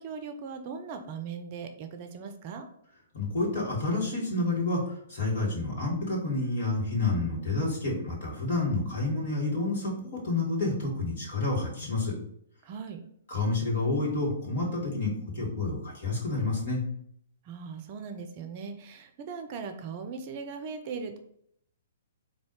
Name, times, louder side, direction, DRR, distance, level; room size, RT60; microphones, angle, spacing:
voice 1, 0.0-2.7 12.6-13.0 17.4-21.2, right 5 dB, 35° right, 7 dB, 0.5 m, -39 dB
voice 2, 3.1-4.8 5.1-12.2 13.3-16.8, left 2 dB, 50° left, -3 dB, 1.9 m, -29 dB
4.1 x 2.7 x 4.7 m, 0.68 s
figure-of-eight pair, 115°, 0 cm